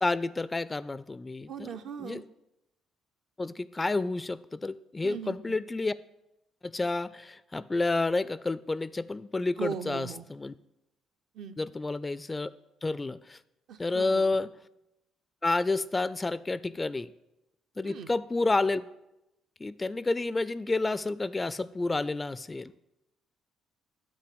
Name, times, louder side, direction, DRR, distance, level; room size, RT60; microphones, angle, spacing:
voice 1, 0.0-1.7 2.0-2.2 3.4-5.9 6.6-10.5 11.6-12.5 12.8-13.4 13.8-14.5 15.4-17.1 17.8-18.8 19.6-22.7, left 3 dB, 25° left, 17 dB, 0.3 m, -30 dB
voice 2, 1.5-2.2 5.0-5.6 9.6-10.2 11.3-11.6 13.7-14.4 17.8-18.1, right 7 dB, 60° right, 7 dB, 0.6 m, -39 dB
9.5 x 4.2 x 6.9 m, 0.90 s
hypercardioid pair, 50°, 0 cm